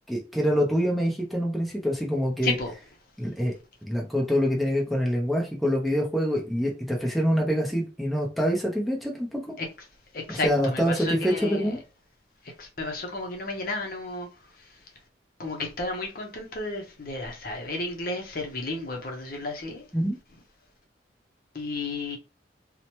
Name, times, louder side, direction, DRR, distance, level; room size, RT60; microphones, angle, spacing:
voice 1, 0.1-2.5 3.2-3.6 3.8-9.6 10.3-11.8 19.9-20.2, equal, ahead, 0.5 m, -25 dB
voice 2, 2.4-2.7 9.6-9.7 10.1-11.8 12.4-14.3 14.6-14.7 15.4-19.9 21.5-22.2, left 2 dB, 50° left, 0.6 m, -32 dB
2.8 x 2.1 x 2.9 m
head